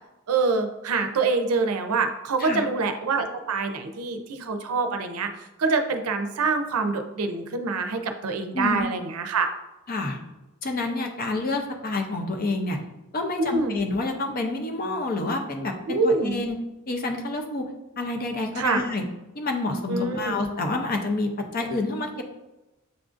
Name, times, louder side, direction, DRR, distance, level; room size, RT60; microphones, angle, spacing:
voice 1, 0.3-5.3 5.6-9.5 13.4-13.7 15.9-16.4 18.6-18.8 19.9-20.3, right 4 dB, 85° right, 6 dB, 0.5 m, -25 dB
voice 2, 9.9-10.2 10.6-12.8 13.1-16.6 16.9-17.7 18.0-19.0 19.3-22.2, left 2 dB, 40° left, 3 dB, 0.5 m, -28 dB
7.1 x 2.5 x 2.4 m, 1.0 s
head